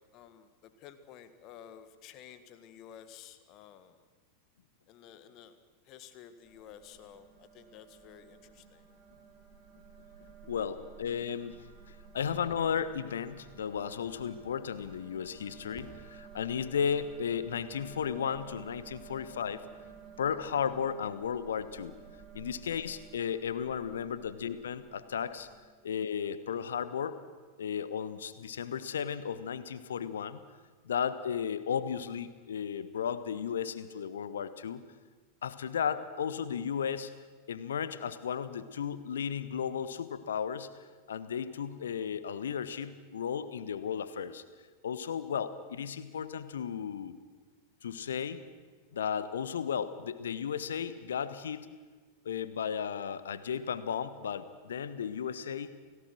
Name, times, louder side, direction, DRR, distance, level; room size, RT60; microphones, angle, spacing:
voice 1, 0.1-4.0 4.9-5.5 5.9-8.9, left 9 dB, 40° left, 11 dB, 1.8 m, -52 dB
sound 1, 6.4-25.6, right 6 dB, 30° right, 5.2 m, -53 dB
voice 2, 10.5-11.6 11.9-19.6 20.2-21.9 22.3-25.5 25.8-27.2 27.6-30.4 30.8-34.8 35.4-37.1 37.5-40.7 41.1-44.4 44.8-47.1 47.8-48.4 48.9-51.7 52.2-55.7, left 7 dB, 65° left, 14 dB, 1.3 m, -34 dB
29.5 x 18.0 x 6.3 m, 1.4 s
figure-of-eight pair, 90°, 0 cm